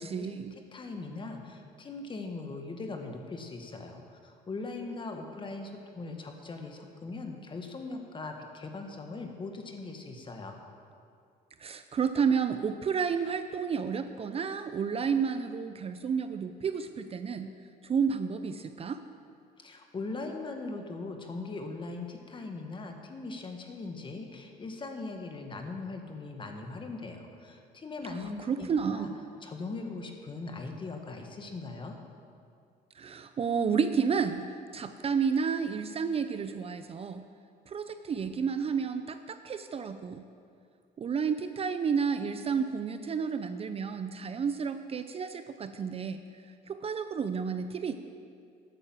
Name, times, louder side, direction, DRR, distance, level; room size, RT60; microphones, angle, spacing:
voice 1, 0.0-0.6 11.6-17.5 17.8-19.0 28.5-29.1 33.0-37.3 37.7-40.3 41.0-46.2 46.7-47.9, right 6 dB, 35° right, 9 dB, 0.6 m, -31 dB
voice 2, 0.7-10.6 19.6-29.1 29.4-32.0, left 3 dB, 30° left, 4 dB, 1.7 m, -40 dB
11.5 x 9.1 x 7.4 m, 2.3 s
cardioid pair, 110°, 17 cm